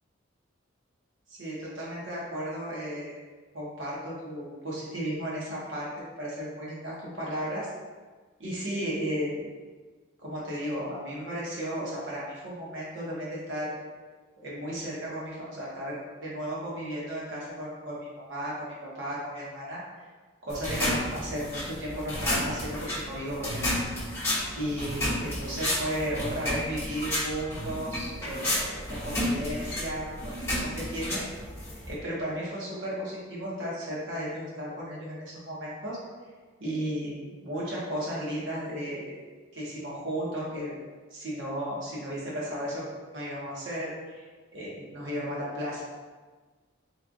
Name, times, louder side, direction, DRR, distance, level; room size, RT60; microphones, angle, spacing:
voice 1, 1.3-3.1 3.5-7.7 8.4-9.3 10.2-13.7 14.4-18.5 18.9-19.8 20.4-23.8 24.1-24.3 24.5-31.2 31.9-36.0 36.6-39.1 39.5-40.7 41.1-42.8 43.1-44.2 44.5-45.8, equal, 65° right, -6 dB, 1.1 m, -34 dB
sound 1, 20.5-32.0, left 1 dB, 15° left, 0.9 m, -32 dB
3.2 x 2.4 x 3.8 m, 1.4 s
head